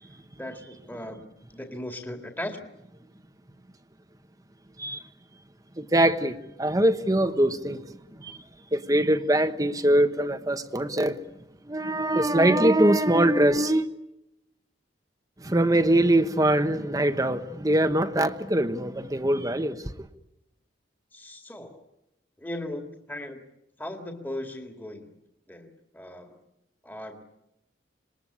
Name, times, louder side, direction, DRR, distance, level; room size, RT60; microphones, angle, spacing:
voice 1, 0.4-2.7 21.1-21.8 22.4-23.5 23.8-25.2 25.5-26.4 26.8-27.2, left 1 dB, 10° left, 2.1 m, -38 dB
voice 2, 5.8-7.8 8.2-8.4 8.7-11.2 11.7-13.9 15.4-20.1, right 1 dB, 20° right, 1.1 m, -23 dB
26.5 x 21.0 x 9.9 m
head